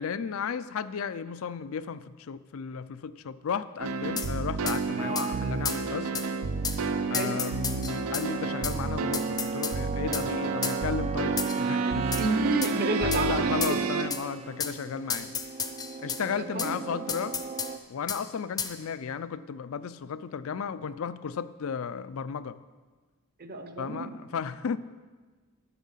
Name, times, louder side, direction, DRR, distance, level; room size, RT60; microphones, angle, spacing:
voice 1, 0.0-6.1 7.1-12.1 13.0-15.4 16.0-17.4 17.9-22.6 23.8-24.8, left 6 dB, 70° left, 15 dB, 0.4 m, -34 dB
sound 1, 3.8-14.1, right 4 dB, 85° right, 0.5 m, -30 dB
sound 2, 4.2-4.3 4.7-4.8 5.2-5.3 5.7-5.8 6.1-6.3 6.6-6.8 7.1-8.3 8.6-8.8 9.1-9.8 10.1-10.3 10.6-10.8 11.4-11.6 12.1-12.3 12.6-12.7 13.1-13.2 13.6-13.8 14.1-14.2 14.6-14.8 15.1-16.2 16.6-16.7 17.1-17.7 18.1-18.2 18.6-18.7, left 6 dB, 20° left, 0.6 m, -32 dB
sound 3, 5.0-17.8, right 5 dB, 30° right, 0.4 m, -38 dB
voice 2, 12.2-13.8 16.5-17.0 23.4-24.2, right 2 dB, 45° right, 6 dB, 0.9 m, -31 dB
11.0 x 7.2 x 5.7 m, 1.4 s
head